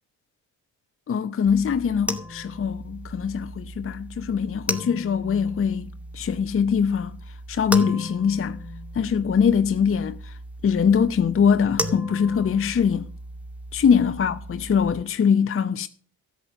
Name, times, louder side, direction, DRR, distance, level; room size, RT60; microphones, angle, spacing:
voice 1, 1.1-5.9 6.1-7.2 7.5-8.6 8.9-10.4 10.6-13.1 13.7-15.9, left 7 dB, 30° left, 0.8 m, -22 dB
sound 1, 1.5-15.0, equal, 5° right, 2.2 m, -36 dB
13.0 x 8.2 x 6.3 m
hypercardioid pair, 50°, 47 cm